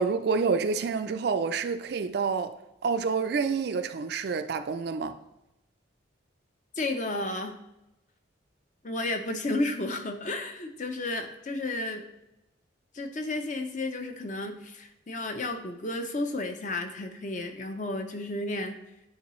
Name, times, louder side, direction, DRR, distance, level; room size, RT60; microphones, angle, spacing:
voice 1, 0.0-2.5 2.8-5.2, right 5 dB, 55° right, 0.3 m, -28 dB
voice 2, 6.8-7.6 8.8-12.1 12.9-18.8, left 2 dB, 40° left, 0.6 m, -32 dB
9.6 x 3.8 x 3.1 m
head